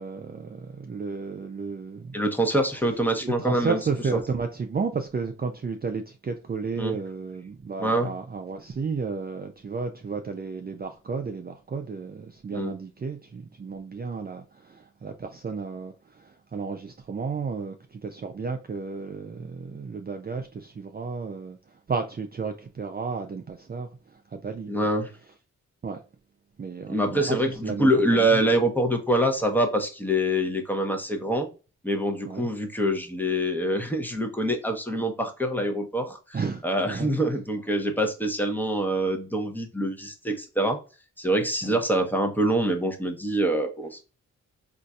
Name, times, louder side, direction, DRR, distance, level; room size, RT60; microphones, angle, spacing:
voice 1, 0.0-2.2 3.2-21.6 21.9-24.7 25.8-26.0 26.6-28.5 32.3-32.5 36.3-37.1 41.6-41.8, right 5 dB, 30° right, 0.5 m, -33 dB
voice 2, 2.1-3.8 6.8-7.0 7.8-8.1 12.5-12.7 24.7-25.1 26.9-31.5 31.8-36.4 36.6-40.8 41.2-44.0, right 1 dB, 5° left, 0.9 m, -25 dB
3.8 x 2.6 x 2.3 m
supercardioid pair, 45°, 34 cm